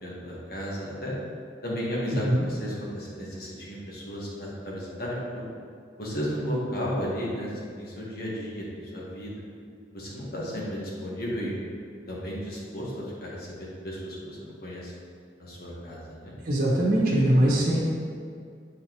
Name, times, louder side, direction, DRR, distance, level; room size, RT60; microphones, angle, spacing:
voice 1, 0.0-1.2 1.6-5.5 6.0-9.3 9.9-11.5 12.1-14.9 15.4-16.3 17.4-17.6, equal, 60° left, -5 dB, 1.5 m, -34 dB
voice 2, 16.4-17.8, right 1 dB, 55° right, -8 dB, 1.2 m, -21 dB
7.8 x 4.7 x 3.0 m, 2.2 s
head